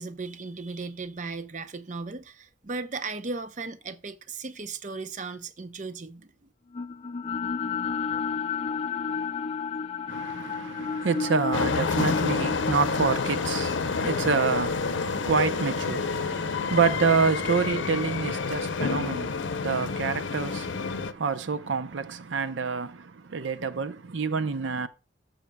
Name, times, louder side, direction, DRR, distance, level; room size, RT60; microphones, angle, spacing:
voice 1, 0.0-6.3, right 3 dB, 40° right, 0.7 m, -36 dB
sound 1, 6.7-16.9, left 5 dB, 30° left, 0.4 m, -33 dB
voice 2, 10.1-24.9, right 5 dB, 85° right, 0.6 m, -28 dB
sound 2, 11.5-21.1, left 5 dB, 85° left, 0.6 m, -29 dB
13.5 x 7.2 x 2.2 m
head